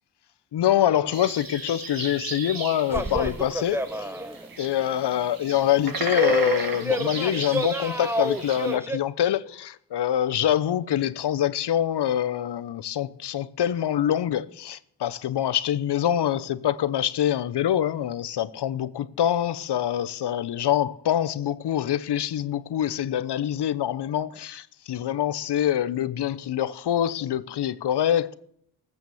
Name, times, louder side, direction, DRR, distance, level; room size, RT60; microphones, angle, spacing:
voice 1, 0.5-4.1 4.6-28.4, left 11 dB, 65° left, 0.8 m, -25 dB
sound 1, 1.1-8.8, right 4 dB, 50° right, 1.8 m, -36 dB
sound 2, 2.9-4.5 4.7-4.9 5.7-9.0, equal, 5° right, 0.8 m, -28 dB
18.5 x 7.9 x 7.1 m
cardioid pair, 100°, 45 cm